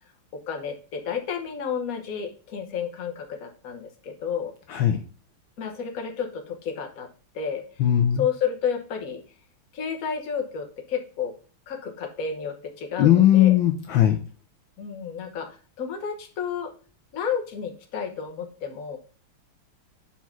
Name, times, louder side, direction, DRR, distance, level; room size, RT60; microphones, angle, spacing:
voice 1, 0.5-4.5 5.6-7.1 7.3-7.6 8.1-9.2 9.7-11.3 11.7-13.6 14.8-15.5 15.8-16.7 17.1-19.0, left 7 dB, 45° left, 4 dB, 1.4 m, -31 dB
voice 2, 7.8-8.2 13.0-14.2, left 11 dB, 70° left, 5 dB, 1.4 m, -18 dB
5.6 x 4.6 x 5.8 m, 0.38 s
omnidirectional pair, 2.4 m